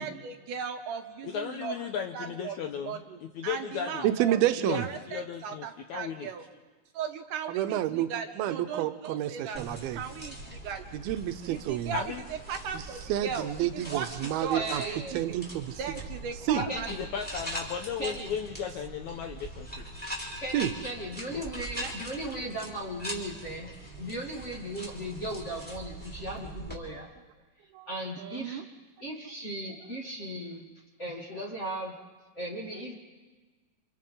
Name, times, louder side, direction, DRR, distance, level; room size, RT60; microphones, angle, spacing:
voice 1, 0.0-1.8 2.1-2.6 2.8-4.4 4.7-6.4 6.9-9.6 10.0-10.9 11.5-13.5 13.7-15.4 15.8-16.9 21.8-21.9 28.2-28.6, right 7 dB, 70° right, 5 dB, 2.3 m, -37 dB
voice 2, 1.2-4.1 4.6-6.3 11.9-12.2 16.6-19.9 21.3-21.4, left 7 dB, 75° left, 5 dB, 1.8 m, -36 dB
voice 3, 4.0-4.8 7.5-8.1 8.4-10.0 10.9-12.0 13.1-14.8 15.1-15.7 16.5-16.6 20.5-20.7 27.8-27.9, right 12 dB, 85° right, 10 dB, 2.7 m, -29 dB
sound 1, 9.5-26.8, right 1 dB, 5° left, 3.7 m, -42 dB
voice 4, 14.5-15.3 16.7-17.0 18.0-18.3 20.4-27.1 27.9-28.6 29.0-30.7 31.0-32.1 32.3-32.9, right 1 dB, 25° left, -2 dB, 1.8 m, -37 dB
29.0 x 27.5 x 3.8 m, 1.3 s
omnidirectional pair, 4.2 m